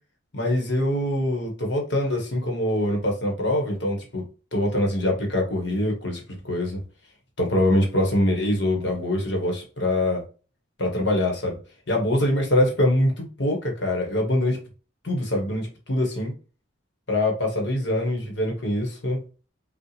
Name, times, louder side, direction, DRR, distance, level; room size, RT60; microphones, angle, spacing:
voice 1, 0.3-4.2 4.5-6.8 7.4-10.2 10.8-11.6 11.9-14.6 15.0-16.3 17.1-19.2, left 1 dB, 55° left, 1 dB, 1.4 m, -24 dB
5.4 x 2.4 x 3.3 m, 0.36 s
head